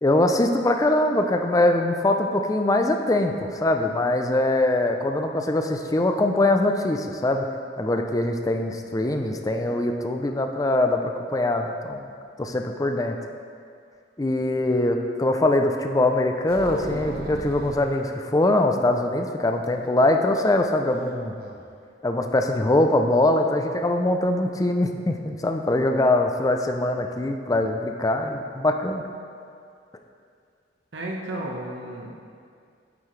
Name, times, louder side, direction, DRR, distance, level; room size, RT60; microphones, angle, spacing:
voice 1, 0.0-7.5 7.8-12.1 12.4-13.2 14.2-21.3 22.0-29.0, left 1 dB, 20° left, 4 dB, 0.4 m, -22 dB
sound 1, 16.5-17.9 19.6-20.6 20.9-21.0 21.4-21.6, right 1 dB, 55° right, 0.8 m, -36 dB
voice 2, 30.9-32.1, right 1 dB, 70° right, -1 dB, 1.2 m, -33 dB
8.8 x 8.5 x 3.2 m, 2.3 s
head